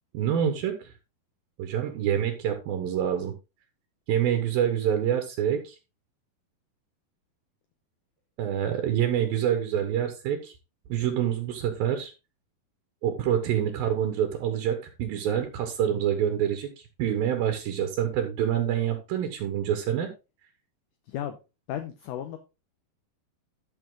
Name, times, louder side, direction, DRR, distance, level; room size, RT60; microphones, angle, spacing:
voice 1, 0.1-0.9 1.6-3.3 4.1-5.8 8.4-10.5 10.9-12.1 13.0-20.1, right 9 dB, 75° right, 3.0 m, -26 dB
voice 2, 21.1-21.4 21.7-22.4, left 10 dB, 75° left, 2.1 m, -34 dB
12.5 x 6.5 x 3.7 m
omnidirectional pair, 4.4 m